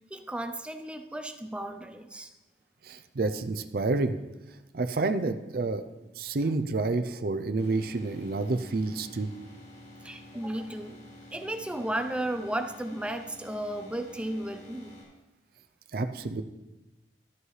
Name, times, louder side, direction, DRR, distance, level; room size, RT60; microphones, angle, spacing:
voice 1, 0.1-2.3 10.0-11.0 11.3-15.0, right 1 dB, 5° right, 7 dB, 0.5 m, -34 dB
voice 2, 2.9-4.1 4.7-5.8 6.2-9.3 15.9-16.4, right 3 dB, 55° right, 9 dB, 0.5 m, -29 dB
sound 1, 7.6-15.0, left 1 dB, 75° left, 3.1 m, -50 dB
12.5 x 8.0 x 3.2 m, 1.0 s
head